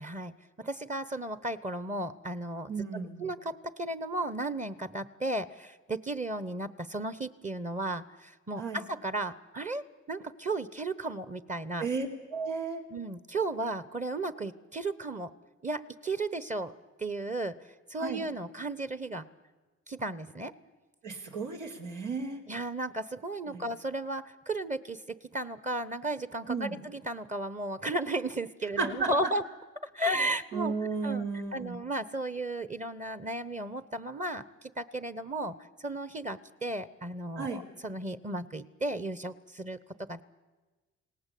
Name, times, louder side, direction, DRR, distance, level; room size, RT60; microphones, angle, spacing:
voice 1, 0.0-2.7 3.2-11.8 12.9-15.3 15.6-16.7 17.0-17.5 17.9-19.2 19.9-20.5 22.5-29.4 29.9-30.7 31.0-31.3 31.5-35.6 35.8-40.2, right 2 dB, 25° right, 14 dB, 1.1 m, -34 dB
voice 2, 2.7-3.2 8.6-8.8 11.8-12.8 18.0-18.2 21.0-22.4 23.5-23.7 26.5-26.8 28.8-29.1 30.5-31.8 37.4-37.6, right 4 dB, 85° right, 2 dB, 3.9 m, -34 dB
28.0 x 18.5 x 8.6 m, 1.2 s
cardioid pair, 90°, 30 cm